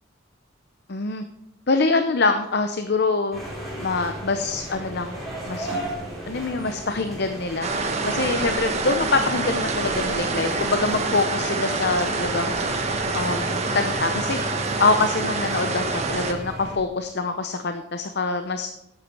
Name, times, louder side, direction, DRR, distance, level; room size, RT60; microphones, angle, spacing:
voice 1, 0.9-1.2 1.7-3.4 3.8-5.2 5.5-5.7 6.3-7.7 8.1-12.6 13.1-14.4 14.8-18.7, left 3 dB, 50° left, 8 dB, 0.7 m, -24 dB
sound 1, 3.3-16.8, equal, ahead, 4.3 m, -35 dB
sound 2, 7.6-16.3, right 3 dB, 35° right, 1.3 m, -26 dB
11.5 x 8.3 x 5.9 m, 0.88 s
head